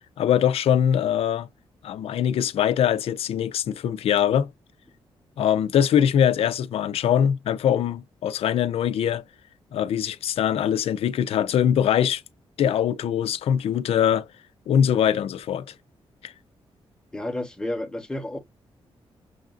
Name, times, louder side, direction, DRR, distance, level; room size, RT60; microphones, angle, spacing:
voice 1, 0.2-1.5 1.8-4.5 5.4-9.2 9.7-12.2 12.6-14.3 14.7-15.7 16.2-16.3, left 9 dB, 80° left, 0.4 m, -22 dB
voice 2, 17.1-18.4, left 1 dB, 5° left, 0.9 m, -31 dB
6.3 x 2.4 x 2.3 m
wide cardioid pair, 155°, 10 cm